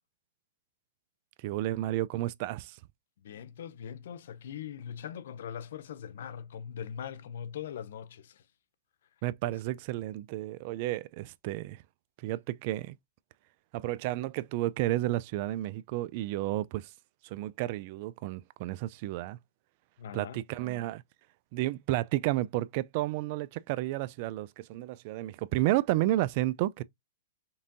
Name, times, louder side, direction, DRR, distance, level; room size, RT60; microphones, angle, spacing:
voice 1, 1.4-2.8 9.2-11.8 12.2-13.0 13.7-16.9 17.2-19.4 20.1-21.0 21.5-26.8, right 16 dB, 45° right, 0.3 m, -31 dB
voice 2, 3.2-8.4 9.4-9.5 20.0-20.4, left 8 dB, 70° left, 0.6 m, -41 dB
5.3 x 2.6 x 2.5 m
hypercardioid pair, 140°, 0 cm